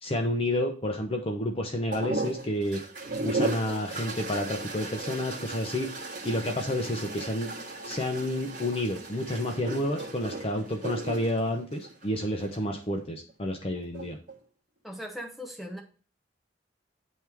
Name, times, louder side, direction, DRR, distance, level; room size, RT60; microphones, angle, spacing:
voice 1, 0.0-2.8 3.2-5.9 6.2-7.5 7.8-14.2, left 1 dB, 35° left, 3 dB, 0.8 m, -30 dB
sound 1, 1.9-12.6 13.8-14.3, right 2 dB, 50° right, 1.6 m, -36 dB
voice 2, 14.8-15.8, equal, ahead, 1 dB, 1.2 m, -39 dB
9.1 x 3.5 x 4.6 m, 0.39 s
head